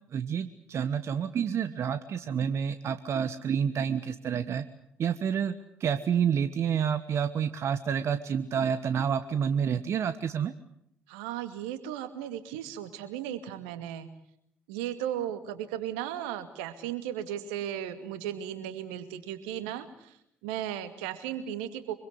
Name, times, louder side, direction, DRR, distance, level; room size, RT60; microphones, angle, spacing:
voice 1, 0.1-4.6 5.0-5.5 5.8-10.5, right 7 dB, 55° right, 11 dB, 1.3 m, -29 dB
voice 2, 11.1-14.1 14.7-20.2 20.4-21.9, right 11 dB, 75° right, 10 dB, 2.2 m, -36 dB
25.5 x 23.5 x 8.2 m, 0.75 s
hypercardioid pair, 50°, 6 cm